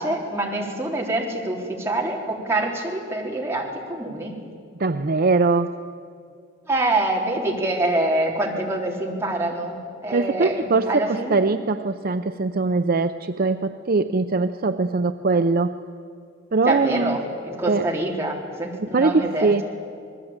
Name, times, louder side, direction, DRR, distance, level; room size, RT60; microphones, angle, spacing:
voice 1, 0.0-4.4 6.7-11.5 16.7-19.5, right 1 dB, 15° right, -1 dB, 3.8 m, -26 dB
voice 2, 4.8-5.7 10.1-15.8 16.5-17.2 17.7-17.9 18.9-19.6, right 3 dB, 50° right, 9 dB, 0.6 m, -21 dB
27.0 x 20.0 x 8.8 m, 2.3 s
head